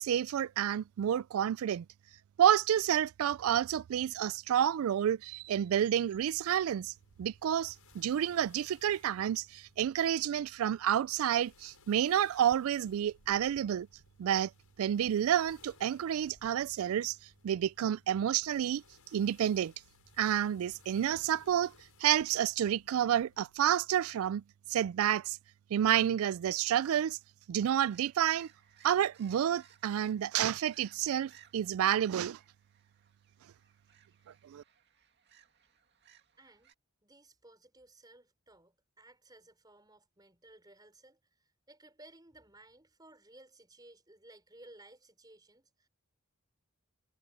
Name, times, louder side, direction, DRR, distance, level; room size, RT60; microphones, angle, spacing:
voice 1, 0.0-1.9 2.4-6.9 7.2-13.9 14.2-14.5 14.8-17.2 17.4-18.8 19.1-19.7 20.2-21.7 22.0-24.4 24.7-25.4 25.7-27.2 27.5-28.5 28.8-32.4 34.4-34.6, right 10 dB, 75° right, 0.3 m, -29 dB
sound 1, 6.2-23.7, left 3 dB, 80° left, 6.3 m, -63 dB
sound 2, 27.7-36.7, right 9 dB, 50° right, 2.3 m, -63 dB
voice 2, 36.4-36.7 37.0-41.2 41.7-45.9, right 2 dB, 20° right, 4.9 m, -58 dB
head